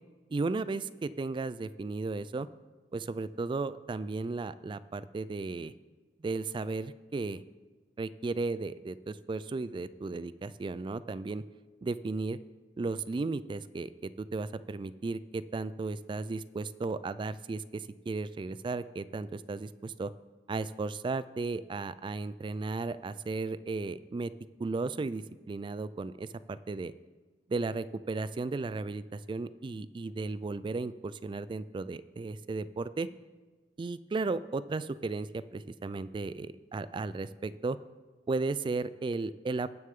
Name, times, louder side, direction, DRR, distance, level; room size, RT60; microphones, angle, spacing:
voice 1, 0.3-2.5 2.9-5.7 6.2-7.4 8.0-11.4 11.8-12.4 12.8-20.1 20.5-24.3 24.6-26.9 27.5-33.1 33.8-37.8 38.3-39.7, right 3 dB, 30° right, 16 dB, 0.3 m, -35 dB
19.0 x 6.5 x 3.7 m, 1.3 s
head